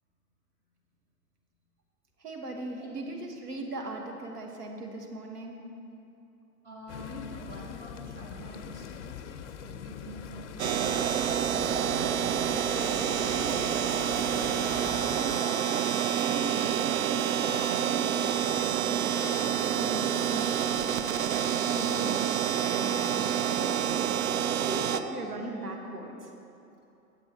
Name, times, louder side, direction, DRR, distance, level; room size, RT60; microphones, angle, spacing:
voice 1, 2.2-5.6 15.8-20.6 20.9-24.2 24.5-26.3, right 2 dB, 85° right, 1 dB, 1.5 m, -39 dB
voice 2, 6.6-13.9 14.5-15.4, equal, 25° right, -4 dB, 2.0 m, -47 dB
sound 1, 6.9-15.4, left 9 dB, 50° left, 0.5 m, -43 dB
sound 2, 10.6-25.0, right 9 dB, 60° right, 0.6 m, -28 dB
9.4 x 7.6 x 4.3 m, 2.7 s
hypercardioid pair, 115°, 46 cm